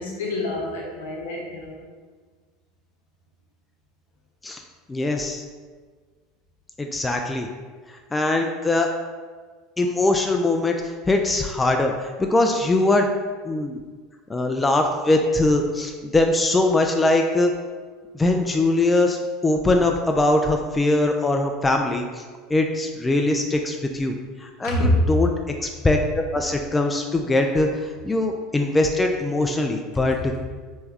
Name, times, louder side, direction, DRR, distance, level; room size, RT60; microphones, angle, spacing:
voice 1, 0.0-1.8 24.6-25.1, left 1 dB, 70° left, -3 dB, 0.6 m, -25 dB
voice 2, 4.9-5.4 6.8-7.5 7.9-8.9 9.8-13.1 13.5-13.8 14.3-17.5 18.1-22.2 22.5-24.1 24.4-25.3 25.6-30.4, left 2 dB, 15° left, 3 dB, 0.3 m, -22 dB
3.4 x 3.1 x 3.4 m, 1.5 s
figure-of-eight pair, 75°, 0 cm